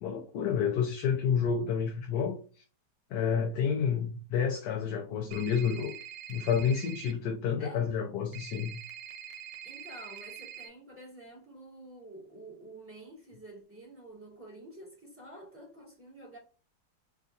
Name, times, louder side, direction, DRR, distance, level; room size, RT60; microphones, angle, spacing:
voice 1, 0.0-2.4 3.1-5.9 6.3-8.7, left 7 dB, 75° left, 1.2 m, -29 dB
sound 1, 5.3-7.1 8.3-10.7, right 9 dB, 80° right, 1.3 m, -45 dB
voice 2, 9.6-16.4, right 1 dB, 5° right, 1.8 m, -49 dB
4.0 x 3.6 x 2.5 m
omnidirectional pair, 1.9 m